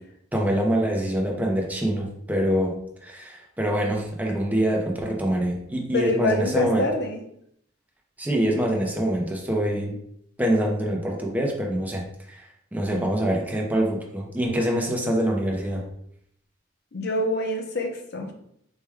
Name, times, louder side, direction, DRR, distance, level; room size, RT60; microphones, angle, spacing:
voice 1, 0.3-2.7 3.0-6.9 8.2-10.0 10.4-12.0 12.3-12.4 12.7-15.8, equal, 10° right, 0 dB, 0.5 m, -25 dB
voice 2, 5.9-7.2 16.9-18.3, left 2 dB, 60° left, 2 dB, 0.6 m, -26 dB
4.4 x 2.2 x 3.4 m, 0.72 s
head